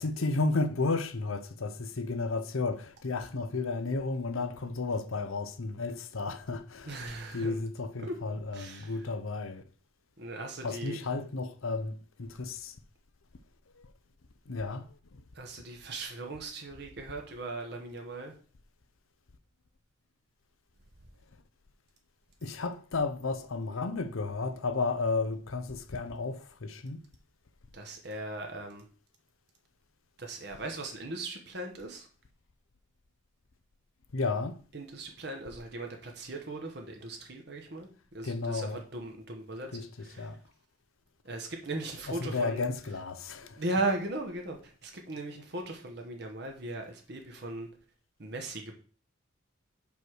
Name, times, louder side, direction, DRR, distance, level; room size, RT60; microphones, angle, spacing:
voice 1, 0.0-7.1 7.3-9.6 10.6-12.8 13.7-13.9 14.5-15.2 22.4-27.0 34.1-34.6 38.2-38.8 39.7-40.4 42.1-43.6, left 3 dB, 80° left, 0.7 m, -33 dB
voice 2, 6.9-7.6 8.0-8.2 8.5-9.0 10.2-11.0 15.3-18.4 27.7-28.9 30.2-32.1 34.7-40.4 41.2-42.6 43.6-47.7 48.2-48.7, right 2 dB, 55° right, 1.1 m, -38 dB
5.4 x 4.6 x 6.3 m
head